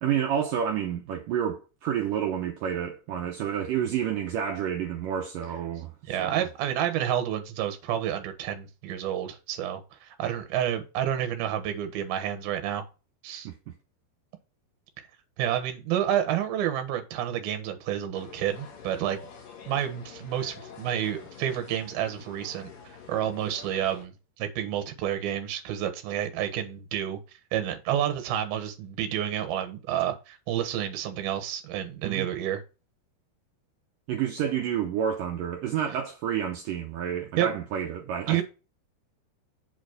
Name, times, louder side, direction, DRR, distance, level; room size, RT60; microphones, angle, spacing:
voice 1, 0.0-5.9 6.2-6.5 13.3-13.8 32.0-32.3 34.1-38.4, right 9 dB, 85° right, 1.9 m, -29 dB
voice 2, 6.1-12.8 13.2-13.5 15.4-19.2 19.7-22.7 23.1-27.2 27.5-32.6 37.4-37.5 38.3-38.4, right 10 dB, 70° right, 2.8 m, -29 dB
sound 1, 18.1-24.0, left 6 dB, 60° left, 3.0 m, -47 dB
7.9 x 4.1 x 6.4 m
omnidirectional pair, 5.1 m